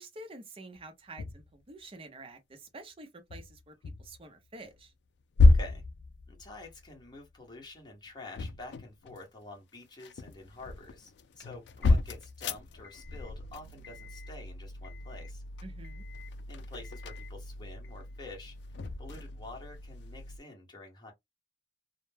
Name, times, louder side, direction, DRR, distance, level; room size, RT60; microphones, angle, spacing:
voice 1, 0.0-4.9 15.6-16.0, right 2 dB, 30° right, 0.6 m, -48 dB
sound 1, 0.8-0.9 1.2-1.5 3.3-4.2 4.6-4.9 5.3-7.3 8.1-9.4 9.8-20.4, left 2 dB, 65° left, 0.3 m, -31 dB
voice 2, 5.4-5.8 6.3-15.4 16.5-18.6 19.0-21.1, left 2 dB, 25° left, 0.9 m, -48 dB
2.2 x 2.1 x 3.2 m
head